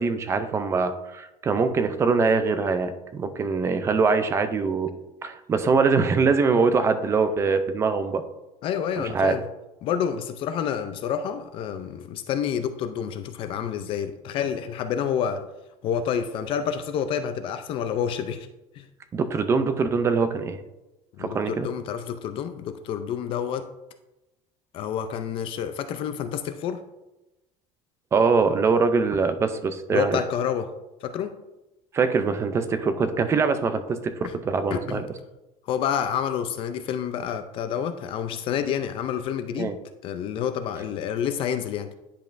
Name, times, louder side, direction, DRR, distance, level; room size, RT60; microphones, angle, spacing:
voice 1, 0.0-4.9 5.2-8.2 9.0-9.3 19.1-20.6 21.2-21.7 28.1-30.2 31.9-34.1 34.5-35.0 39.6-39.7, right 4 dB, 20° right, 9 dB, 0.4 m, -23 dB
voice 2, 8.6-9.4 9.8-15.4 15.8-18.5 18.8-18.9 21.2-23.7 24.7-26.8 29.9-30.7 31.0-31.4 34.2-34.3 34.7-35.0 35.7-39.7 40.0-41.9, left 8 dB, 40° left, 9 dB, 0.4 m, -28 dB
9.8 x 5.3 x 2.5 m, 0.97 s
cardioid pair, 175°, 14 cm